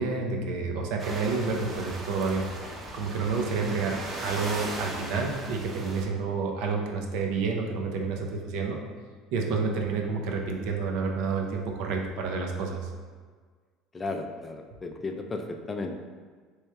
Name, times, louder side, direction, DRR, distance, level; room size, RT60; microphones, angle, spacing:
voice 1, 0.0-2.5 2.9-8.8 9.3-12.9, right 4 dB, 70° right, 1 dB, 0.6 m, -29 dB
sound 1, 1.0-6.1, right 1 dB, 30° right, 0.7 m, -38 dB
voice 2, 13.9-15.9, left 3 dB, 20° left, 4 dB, 0.4 m, -34 dB
3.3 x 3.1 x 3.4 m, 1.5 s
supercardioid pair, 110°, 0 cm